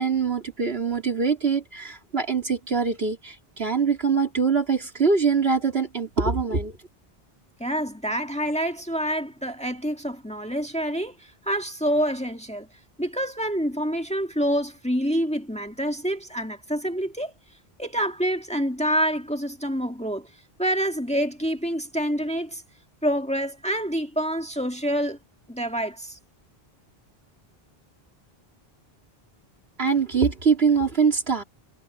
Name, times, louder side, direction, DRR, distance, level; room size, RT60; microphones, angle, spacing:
voice 1, 0.0-6.7 29.8-31.4, right 5 dB, 80° right, 3.2 m, -23 dB
voice 2, 7.6-12.7 13.0-17.3 17.8-20.3 20.6-22.6 23.0-25.2 25.5-26.2, equal, 5° left, 1.8 m, -27 dB
omnidirectional pair, 1.0 m